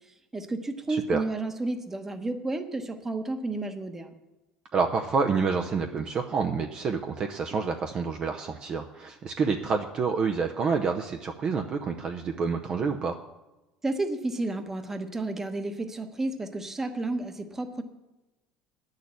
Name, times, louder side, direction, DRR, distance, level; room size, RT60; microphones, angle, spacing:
voice 1, 0.3-4.1 13.8-17.8, right 2 dB, 15° right, 7 dB, 1.1 m, -31 dB
voice 2, 0.9-1.2 4.7-13.2, right 5 dB, 35° right, 4 dB, 0.7 m, -28 dB
10.0 x 6.5 x 8.4 m, 1.0 s
cardioid pair, 130°, 3 cm